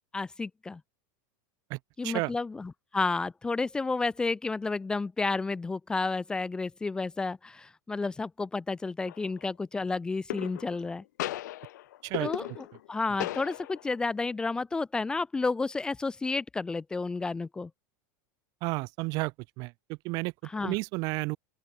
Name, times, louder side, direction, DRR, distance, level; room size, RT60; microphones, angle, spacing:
voice 1, 0.1-0.8 2.0-11.0 12.2-17.7 20.5-20.7, left 3 dB, 10° left, 0.6 m, -31 dB
sound 1, 9.0-9.4 10.3-10.9 11.2-12.9 13.2-14.0, left 15 dB, 80° left, 2.3 m, -37 dB
voice 2, 12.0-12.6 18.6-20.3 20.6-21.4, right 26 dB, 40° right, 1.2 m, -32 dB
open air
supercardioid pair, 160°, 10 cm